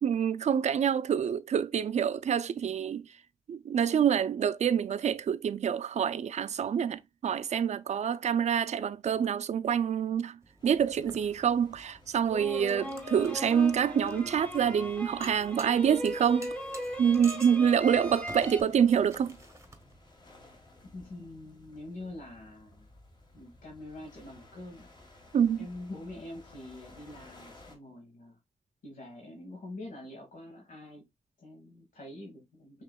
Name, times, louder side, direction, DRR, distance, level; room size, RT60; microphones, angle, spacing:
voice 1, 0.0-3.1 3.5-16.5 17.0-19.4 25.3-25.7, right 8 dB, 55° right, 0.4 m, -27 dB
sound 1, 10.4-20.1, right 2 dB, 20° right, 0.8 m, -51 dB
sound 2, 10.6-27.8, left 2 dB, 35° left, 1.5 m, -56 dB
sound 3, 12.3-18.6, equal, 10° left, 1.0 m, -38 dB
voice 2, 20.9-22.9 23.3-24.9 25.6-28.4 28.8-31.0 31.4-32.8, left 2 dB, 80° left, 1.5 m, -45 dB
5.5 x 3.0 x 2.2 m
cardioid pair, 95°, 14 cm